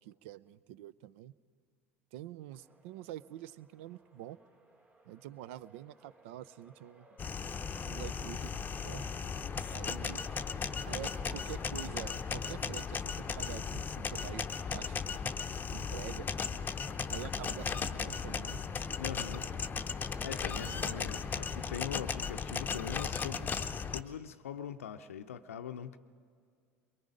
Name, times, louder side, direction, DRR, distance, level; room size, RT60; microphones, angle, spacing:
voice 1, 0.0-1.3 2.1-4.4 5.0-7.1 7.8-9.0 9.7-10.2 10.8-15.3 15.7-16.3 17.1-18.6 20.6-20.9, right 13 dB, 65° right, 0.5 m, -46 dB
sound 1, 2.5-22.0, right 1 dB, 20° right, 1.9 m, -59 dB
sound 2, 7.2-24.0, left 6 dB, 25° left, 0.7 m, -36 dB
voice 2, 19.0-19.5 20.2-26.0, left 8 dB, 75° left, 0.6 m, -42 dB
23.5 x 22.5 x 5.2 m
figure-of-eight pair, 70°, 7 cm